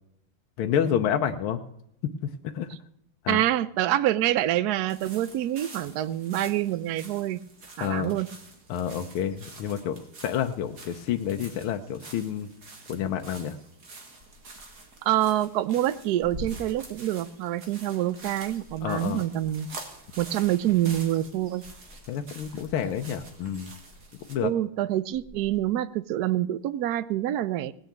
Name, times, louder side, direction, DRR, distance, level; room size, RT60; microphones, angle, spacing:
voice 1, 0.6-1.6 2.2-2.7 3.2-3.4 7.8-8.2 8.7-12.5 12.9-13.6 18.8-19.2 22.1-23.7 24.3-24.5, left 9 dB, 75° left, 6 dB, 1.6 m, -29 dB
voice 2, 3.3-7.4 7.8-8.3 15.0-19.7 20.2-21.6 24.4-27.7, right 13 dB, 75° right, 15 dB, 0.9 m, -26 dB
sound 1, 4.9-24.3, right 3 dB, 45° right, 2.7 m, -47 dB
Liquid, 14.1-17.7 18.0-25.6, left 1 dB, 25° right, 3.5 m, -48 dB
18.5 x 6.4 x 8.5 m, 0.75 s
omnidirectional pair, 2.4 m